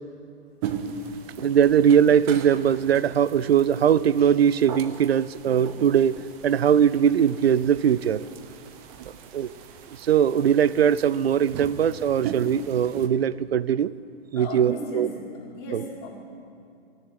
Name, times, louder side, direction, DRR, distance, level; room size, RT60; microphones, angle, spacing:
sound 1, 0.6-13.1, right 6 dB, 35° right, 1.1 m, -39 dB
voice 1, 1.4-8.3 9.3-9.5 10.0-13.9 14.3-15.1 15.7-15.8, right 8 dB, 75° right, 19 dB, 0.5 m, -21 dB
voice 2, 14.4-15.1 15.5-16.1, equal, 40° left, -2 dB, 3.7 m, -35 dB
16.0 x 7.1 x 9.5 m, 2.4 s
figure-of-eight pair, 110°, 31 cm